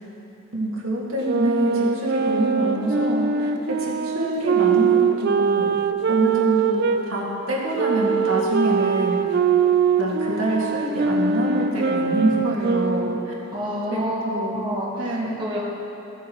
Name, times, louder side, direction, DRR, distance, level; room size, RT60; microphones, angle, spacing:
voice 1, 0.5-5.8 6.1-9.4 10.0-13.3 13.9-14.6 15.0-15.4, right 1 dB, 85° right, -5 dB, 2.0 m, -26 dB
sound 1, 1.2-7.0 7.8-13.4, right 6 dB, 50° right, 0.4 m, -22 dB
voice 2, 13.5-15.6, equal, 20° right, -6 dB, 1.4 m, -28 dB
16.0 x 7.6 x 3.1 m, 2.9 s
head